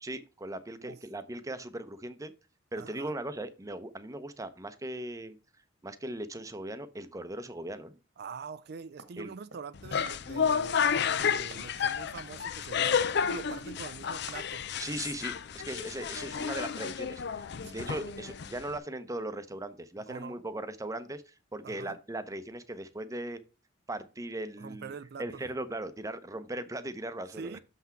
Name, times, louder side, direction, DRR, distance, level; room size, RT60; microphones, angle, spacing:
voice 1, 0.0-2.3 2.7-5.4 5.8-8.0 9.2-9.3 14.8-17.2 17.6-23.4 23.9-24.9 25.2-27.6, right 1 dB, 15° right, 0.7 m, -38 dB
voice 2, 2.8-3.1 8.2-13.0 13.3-14.7 17.6-17.9 20.1-20.4 21.6-22.0 24.6-25.4 27.3-27.6, right 5 dB, 55° right, 0.4 m, -44 dB
sound 1, 9.0-9.8 10.0-14.9, right 4 dB, 75° right, 1.7 m, -55 dB
sound 2, 9.7-18.8, left 7 dB, 60° left, 0.5 m, -31 dB
7.1 x 5.9 x 4.5 m
head